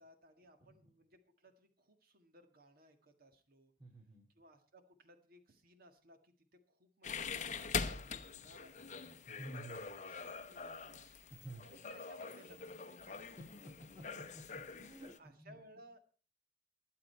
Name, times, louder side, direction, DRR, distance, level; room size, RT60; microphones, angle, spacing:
voice 1, 0.0-3.7 4.4-9.2 9.6-11.1 11.6-13.3 15.0-16.0, right 1 dB, 55° right, 7 dB, 1.7 m, -62 dB
voice 2, 3.8-4.3 9.4-9.9 11.3-11.7 14.0-15.5, right 2 dB, 25° right, -1 dB, 2.2 m, -51 dB
sound 1, 7.0-15.2, left 5 dB, 40° left, 0.9 m, -44 dB
21.5 x 7.6 x 4.5 m, 0.40 s
head